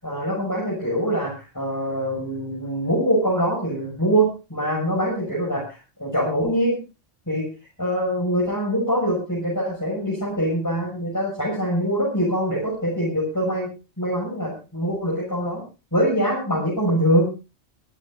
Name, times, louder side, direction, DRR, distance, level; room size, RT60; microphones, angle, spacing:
voice 1, 0.0-6.8 7.3-7.5 7.8-13.7 14.0-15.6 15.9-17.3, equal, 15° left, -4 dB, 7.3 m, -23 dB
25.0 x 14.5 x 2.6 m, 0.32 s
omnidirectional pair, 1.2 m